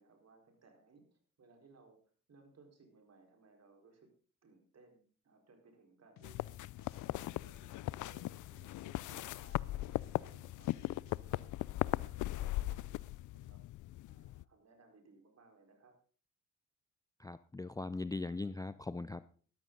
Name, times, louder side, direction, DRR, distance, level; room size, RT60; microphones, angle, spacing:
voice 1, 0.0-2.0 2.3-4.1 4.4-13.7 14.1-15.9, right 3 dB, 50° right, 4 dB, 4.5 m, -64 dB
sound 1, 6.2-7.1 7.4-11.2, left 10 dB, 80° left, 1.3 m, -62 dB
sound 2, 6.2-14.4, left 16 dB, 65° left, 0.5 m, -39 dB
voice 2, 17.2-19.2, left 3 dB, 10° left, 15 dB, 0.5 m, -40 dB
13.0 x 12.5 x 3.9 m, 0.42 s
supercardioid pair, 70°, 33 cm